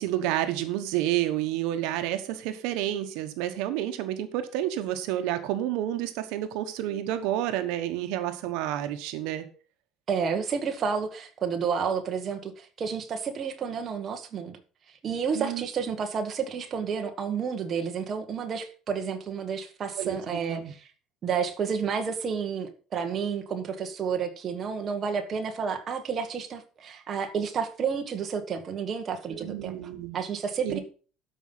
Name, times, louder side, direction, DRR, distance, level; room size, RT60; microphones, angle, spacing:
voice 1, 0.0-9.5 15.3-15.6 20.0-20.7 29.3-30.2 30.6-30.8, right 12 dB, 85° right, 8 dB, 1.1 m, -30 dB
voice 2, 10.1-14.6 15.0-20.9 21.2-29.7 30.1-30.8, right 6 dB, 30° right, 5 dB, 1.4 m, -30 dB
12.5 x 5.5 x 5.6 m, 0.39 s
cardioid pair, 160°, 0 cm